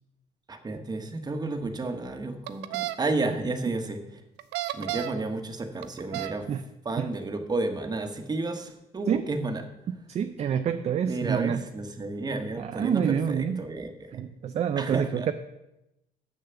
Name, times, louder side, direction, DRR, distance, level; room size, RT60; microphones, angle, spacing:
voice 1, 0.5-4.0 4.7-6.5 6.8-9.6 11.1-14.2 14.8-15.3, right 2 dB, 25° right, 6 dB, 1.2 m, -32 dB
sound 1, 2.5-2.9 4.4-5.2 5.8-6.4, right 16 dB, 90° right, 0.6 m, -32 dB
voice 2, 6.1-6.6 7.0-7.1 9.1-9.3 10.1-11.6 12.6-13.6 14.1-15.3, right 8 dB, 40° right, 9 dB, 0.5 m, -27 dB
6.8 x 6.5 x 7.0 m, 0.91 s
cardioid pair, 110°, 17 cm